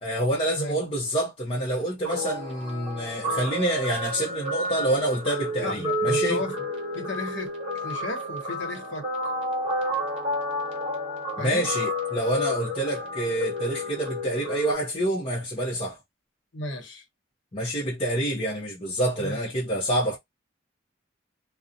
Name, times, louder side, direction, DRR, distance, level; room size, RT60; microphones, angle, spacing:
voice 1, 0.0-6.4 11.4-16.0 17.5-20.2, right 1 dB, 30° left, 0.6 m, -27 dB
Guitar, 2.0-14.8, equal, 30° right, 1.1 m, -30 dB
voice 2, 5.6-6.6 6.9-7.5 7.8-9.1 11.4-11.7 16.5-17.0 19.2-19.4 19.7-19.8, left 2 dB, 70° left, 0.8 m, -34 dB
2.6 x 2.0 x 2.4 m
head